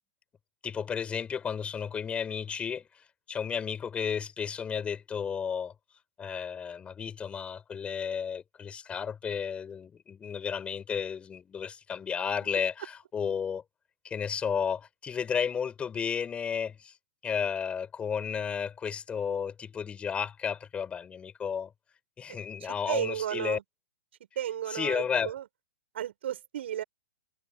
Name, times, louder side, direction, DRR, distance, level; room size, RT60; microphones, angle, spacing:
voice 1, 0.6-5.7 6.2-13.6 14.0-16.9 17.2-21.7 22.2-23.6 24.7-25.3, left 7 dB, 15° left, 6.2 m, -33 dB
voice 2, 22.9-23.6 24.4-25.5 25.9-26.8, right 11 dB, 65° right, 7.5 m, -33 dB
hypercardioid pair, 125°, 7 cm